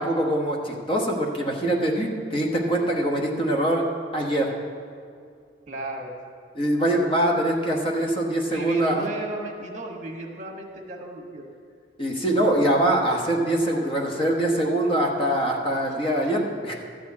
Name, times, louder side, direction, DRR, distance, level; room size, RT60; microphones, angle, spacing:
voice 1, 0.0-3.8 4.1-4.5 6.5-9.1 12.0-16.7, right 1 dB, 30° left, 0 dB, 1.1 m, -23 dB
voice 2, 5.7-6.1 8.5-11.5, right 2 dB, 45° right, 1 dB, 1.3 m, -34 dB
12.5 x 4.3 x 8.4 m, 2.3 s
head